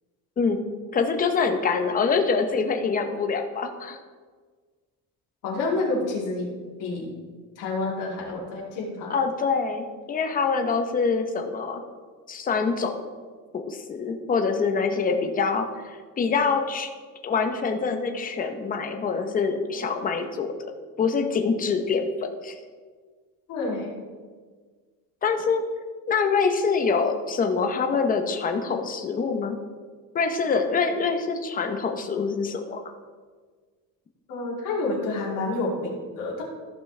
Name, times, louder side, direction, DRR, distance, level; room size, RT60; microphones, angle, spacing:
voice 1, 0.9-4.0 9.1-11.8 12.3-13.1 13.5-16.9 17.2-20.5 21.0-22.6 25.2-25.6 26.1-29.6 30.1-32.8, left 5 dB, 25° left, 6 dB, 0.7 m, -25 dB
voice 2, 5.4-6.5 6.8-7.1 7.6-9.2 23.5-24.0 34.3-36.4, left 2 dB, 60° left, -4 dB, 2.9 m, -28 dB
14.5 x 6.0 x 3.3 m, 1.5 s
cardioid pair, 160°, 36 cm